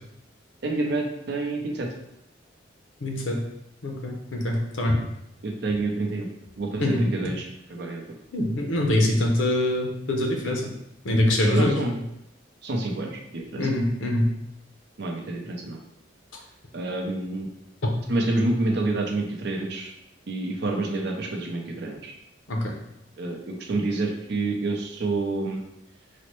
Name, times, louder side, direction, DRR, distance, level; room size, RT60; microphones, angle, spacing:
voice 1, 0.6-1.9 5.4-6.3 6.6-8.0 11.5-12.0 12.6-13.7 15.0-15.8 16.7-17.5 18.1-19.9 20.3-22.1 23.2-25.6, right 2 dB, 60° right, 2 dB, 0.6 m, -28 dB
voice 2, 3.0-3.4 3.8-5.0 6.8-7.0 8.3-10.6 11.0-11.7 13.6-14.3 22.5-22.7, left 1 dB, 85° left, 1 dB, 0.7 m, -23 dB
4.0 x 2.1 x 3.1 m, 0.80 s
head